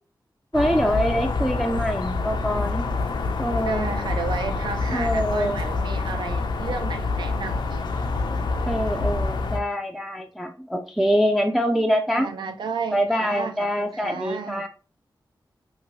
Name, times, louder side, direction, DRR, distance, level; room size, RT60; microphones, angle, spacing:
sound 1, 0.5-9.6, left 3 dB, 75° left, 0.4 m, -27 dB
voice 1, 0.5-2.9 3.4-4.0 4.9-5.6 8.7-12.3 12.9-14.7, equal, 5° right, 0.3 m, -24 dB
voice 2, 3.7-7.9 12.1-14.7, right 5 dB, 80° right, 0.4 m, -33 dB
2.6 x 2.6 x 3.0 m
wide cardioid pair, 110°, 8 cm